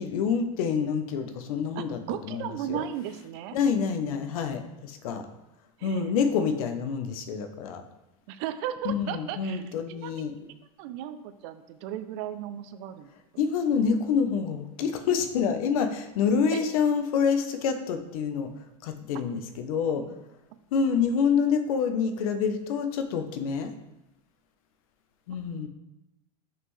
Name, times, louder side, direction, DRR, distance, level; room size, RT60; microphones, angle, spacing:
voice 1, 0.0-2.8 3.5-5.3 5.8-7.8 8.8-10.5 13.4-18.5 18.8-20.0 20.7-23.7 25.3-25.7, left 6 dB, 70° left, 8 dB, 0.7 m, -27 dB
voice 2, 1.8-3.6 5.8-6.0 8.3-9.6 9.9-10.1 10.8-13.1 16.5-16.6 20.0-20.1, right 11 dB, 50° right, 11 dB, 0.4 m, -35 dB
5.7 x 5.5 x 3.1 m, 0.93 s
supercardioid pair, 155°, 19 cm